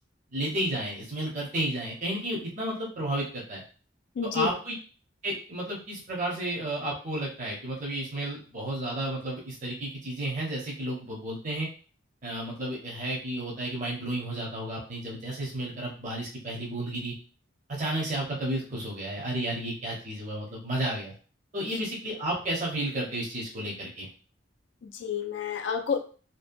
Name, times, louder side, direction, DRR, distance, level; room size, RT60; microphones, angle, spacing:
voice 1, 0.3-3.6 4.3-4.7 5.2-11.7 12.2-17.1 17.7-21.1 21.5-24.1, right 1 dB, 40° right, -4 dB, 0.7 m, -32 dB
voice 2, 4.2-4.5 21.7-21.8 24.8-26.0, left 6 dB, 70° left, 6 dB, 0.3 m, -30 dB
2.6 x 2.1 x 2.5 m, 0.39 s
head